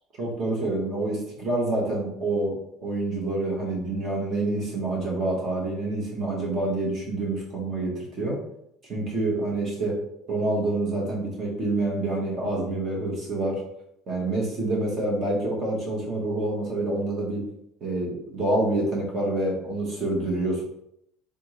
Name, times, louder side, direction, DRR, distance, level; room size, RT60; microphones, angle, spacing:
voice 1, 0.2-2.6 2.8-8.4 8.9-9.9 10.3-13.6 14.1-17.4 17.8-20.7, right 2 dB, 30° right, -2 dB, 1.2 m, -27 dB
3.7 x 3.5 x 3.1 m, 0.76 s
cardioid pair, 165°, 0 cm